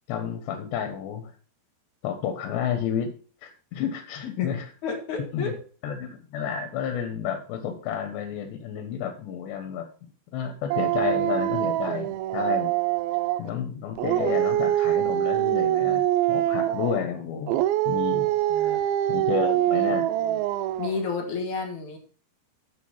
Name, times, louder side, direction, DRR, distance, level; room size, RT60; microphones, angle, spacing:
voice 1, 0.1-1.3 2.0-3.1 3.4-4.7 5.3-5.6 5.8-9.9 10.3-12.7 13.4-16.0 16.3-18.3 18.8-20.1, left 8 dB, 90° left, 5 dB, 3.4 m, -31 dB
voice 2, 4.8-5.6 18.5-18.8 20.2-20.4 20.8-22.0, left 5 dB, 55° left, 2 dB, 2.6 m, -31 dB
Dog, 10.7-13.5 14.0-17.1 17.5-21.0, right 13 dB, 80° right, 2.2 m, -24 dB
8.3 x 6.8 x 5.6 m, 0.40 s
omnidirectional pair, 4.8 m